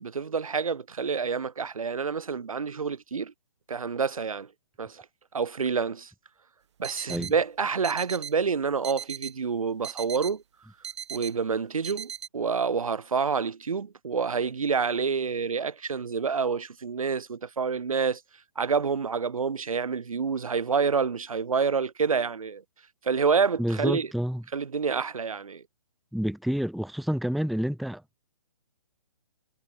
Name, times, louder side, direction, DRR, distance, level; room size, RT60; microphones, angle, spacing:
voice 1, 0.0-3.3 3.7-4.5 4.8-5.0 5.3-6.1 6.8-10.4 11.1-18.2 18.6-22.6 23.0-24.1 24.5-25.6, right 5 dB, 85° right, 1.2 m, -28 dB
sound 1, 6.8-7.3 7.8-8.4 8.8-9.4 9.8-10.4 10.8-11.4 11.8-12.3, right 9 dB, 55° right, 4.1 m, -38 dB
voice 2, 23.6-24.4 26.1-28.2, equal, ahead, 0.7 m, -29 dB
hypercardioid pair, 145°, 17 cm